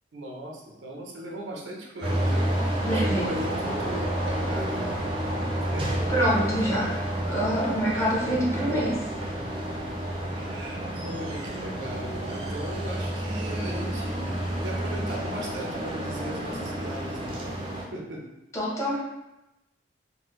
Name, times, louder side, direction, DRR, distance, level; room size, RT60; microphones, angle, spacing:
voice 1, 0.1-5.1 5.5-7.0 7.9-9.0 10.4-17.6 17.9-18.3, right 1 dB, 85° right, -1 dB, 0.6 m, -38 dB
sound 1, 2.0-17.9, right 1 dB, 30° right, 0.5 m, -30 dB
voice 2, 2.8-3.3 6.1-6.9 7.3-9.0 18.5-19.0, equal, 15° left, -6 dB, 0.7 m, -25 dB
3.5 x 2.2 x 3.1 m, 0.92 s
head